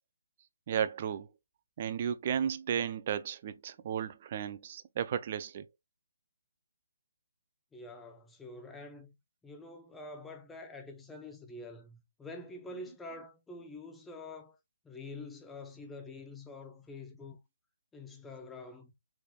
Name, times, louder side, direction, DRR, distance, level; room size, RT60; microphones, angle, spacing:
voice 1, 0.7-1.3 1.8-5.6, right 8 dB, 40° right, 0.4 m, -34 dB
voice 2, 7.7-9.1 9.4-14.6 14.8-17.4 17.9-18.9, left 2 dB, 5° left, 0.7 m, -46 dB
4.0 x 3.3 x 2.2 m
figure-of-eight pair, 145°, 0 cm